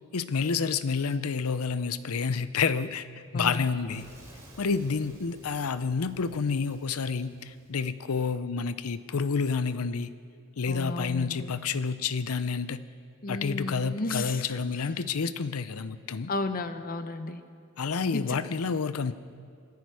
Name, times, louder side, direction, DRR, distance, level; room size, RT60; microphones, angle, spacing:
voice 1, 0.1-3.1 3.3-4.0 4.6-10.1 10.6-12.8 13.3-16.3 17.8-19.1, left 5 dB, 80° left, 14 dB, 0.6 m, -29 dB
Fire / Explosion, 3.5-8.3, right 1 dB, 15° right, 3.4 m, -53 dB
voice 2, 10.7-11.5 13.2-14.4 16.3-17.4 18.1-18.4, left 2 dB, 40° left, 10 dB, 0.8 m, -33 dB
27.0 x 10.5 x 4.8 m, 2.2 s
head